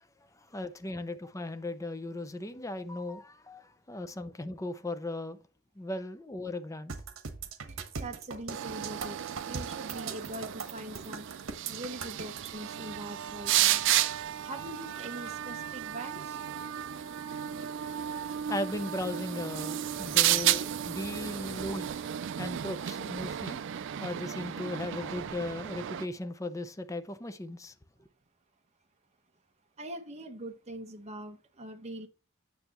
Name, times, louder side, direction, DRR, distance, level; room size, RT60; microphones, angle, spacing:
voice 1, 0.5-5.4 5.8-6.9 18.2-23.6 24.0-27.7, left 1 dB, 15° left, 0.5 m, -37 dB
sound 1, 6.9-12.5, right 5 dB, 85° right, 1.2 m, -40 dB
voice 2, 8.0-11.3 11.7-13.8 14.4-16.4 29.8-32.1, right 1 dB, 30° right, 1.0 m, -42 dB
sound 2, 8.5-26.1, right 12 dB, 60° right, 0.4 m, -33 dB
8.9 x 6.8 x 3.0 m
head